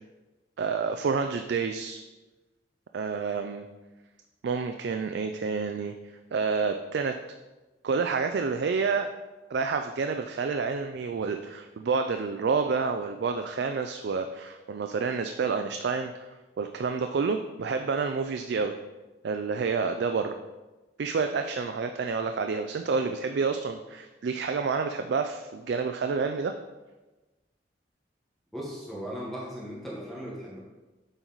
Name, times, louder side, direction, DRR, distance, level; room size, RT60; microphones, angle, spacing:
voice 1, 0.6-2.0 2.9-3.7 4.4-5.9 6.3-7.2 7.8-9.1 9.5-16.3 16.6-18.8 19.2-20.4 21.0-26.5, right 5 dB, 70° right, 6 dB, 0.4 m, -29 dB
voice 2, 28.5-30.6, equal, ahead, -6 dB, 1.2 m, -37 dB
8.1 x 4.6 x 3.9 m, 1.2 s
head